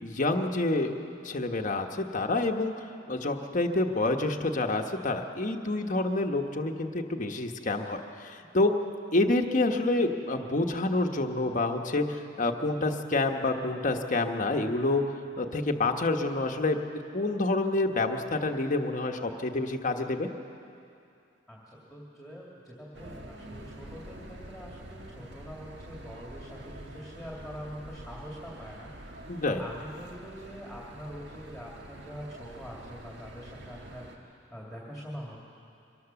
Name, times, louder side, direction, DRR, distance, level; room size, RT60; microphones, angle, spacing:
voice 1, 0.0-0.9 1.2-8.7 9.1-15.0 15.4-20.3 29.3-29.6, left 2 dB, 45° left, 4 dB, 1.2 m, -28 dB
voice 2, 21.5-35.4, equal, ahead, -4 dB, 2.5 m, -44 dB
sound 1, 22.9-34.2, right 1 dB, 65° right, 1.7 m, -46 dB
24.0 x 18.5 x 7.0 m, 2.5 s
head